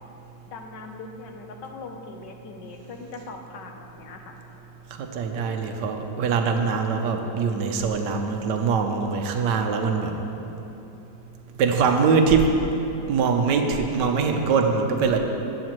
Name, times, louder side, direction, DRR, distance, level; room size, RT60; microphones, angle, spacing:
voice 1, 0.5-4.4, left 3 dB, 90° left, 3 dB, 1.5 m, -40 dB
voice 2, 4.9-10.2 11.6-12.6 13.1-15.2, right 5 dB, 80° right, 4 dB, 1.3 m, -23 dB
15.0 x 8.2 x 3.0 m, 3.0 s
omnidirectional pair, 1.9 m